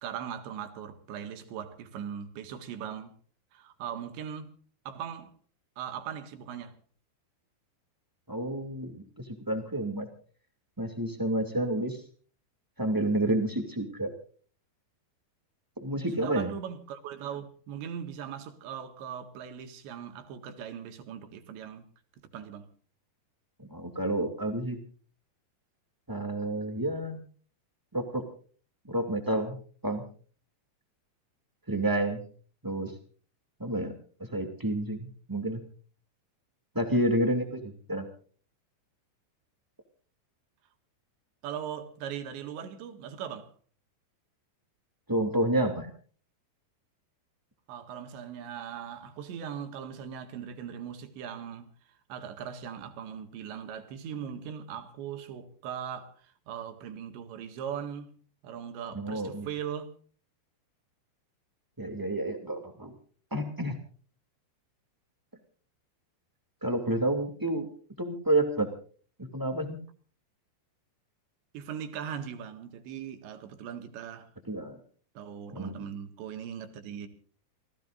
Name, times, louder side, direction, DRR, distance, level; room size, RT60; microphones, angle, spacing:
voice 1, 0.0-3.2 3.5-4.5 4.9-5.3 5.8-6.8 16.0-21.9 22.2-22.7 41.4-43.5 47.7-58.2 58.4-59.9 71.5-74.3 75.2-77.1, right 8 dB, 70° right, 4.0 m, -39 dB
voice 2, 8.3-10.1 10.8-12.0 12.8-14.1 15.8-16.5 23.6-24.8 26.1-27.2 27.9-28.2 28.9-29.6 29.8-30.0 31.7-32.2 32.6-32.9 33.6-33.9 34.2-35.6 36.7-38.1 45.1-45.9 58.9-59.5 61.8-62.9 63.3-63.8 66.6-67.7 68.0-68.7 69.2-69.8 74.5-74.8 75.5-75.8, right 1 dB, 20° right, 0.5 m, -29 dB
28.5 x 17.0 x 2.5 m
omnidirectional pair, 5.4 m